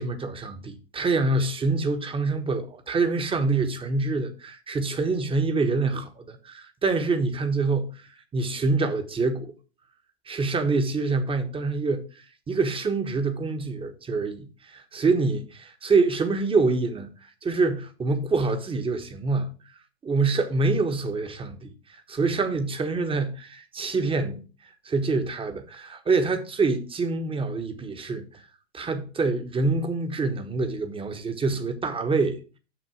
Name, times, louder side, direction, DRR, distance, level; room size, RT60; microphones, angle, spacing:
voice 1, 0.0-7.9 8.3-9.5 10.3-12.0 12.5-17.1 17.4-19.5 20.0-21.7 22.1-24.4 24.8-28.2 28.7-32.4, right 3 dB, 15° right, 1.3 m, -26 dB
7.1 x 6.2 x 4.8 m
figure-of-eight pair, 90°, 33 cm